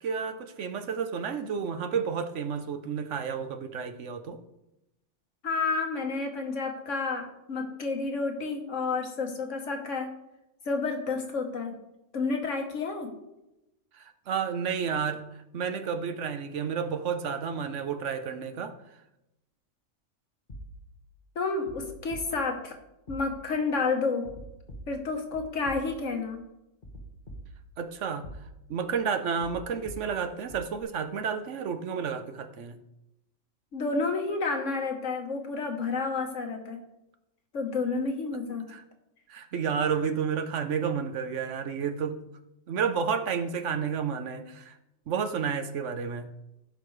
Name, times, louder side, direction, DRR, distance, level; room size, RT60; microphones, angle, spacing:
voice 1, 0.0-4.4 13.9-15.2 15.5-18.7 27.8-28.3 28.7-32.8 38.7-38.8 39.3-42.2 42.7-44.7 45.1-46.3, right 6 dB, 75° right, 8 dB, 1.2 m, -31 dB
voice 2, 5.4-10.1 10.6-11.7 12.1-13.1 21.3-22.7 23.1-24.3 24.9-26.4 33.7-36.8 37.5-38.6, left 4 dB, 80° left, 3 dB, 1.6 m, -30 dB
sound 1, 20.5-21.1 21.7-22.7 23.1-23.7 24.2-26.3 26.8-27.9 28.2-28.9 29.4-30.8, right 1 dB, 40° left, 1.8 m, -46 dB
15.5 x 5.6 x 3.2 m, 0.89 s
omnidirectional pair, 1.3 m